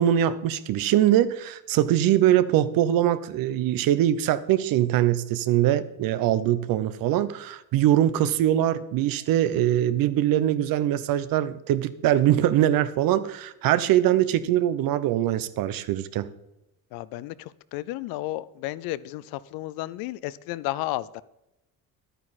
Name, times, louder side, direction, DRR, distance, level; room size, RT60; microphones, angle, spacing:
voice 1, 0.0-16.3, right 12 dB, 75° right, 14 dB, 0.8 m, -22 dB
voice 2, 16.9-21.2, left 16 dB, 85° left, 18 dB, 0.6 m, -33 dB
11.0 x 9.2 x 4.1 m, 0.89 s
cardioid pair, 105°, 35 cm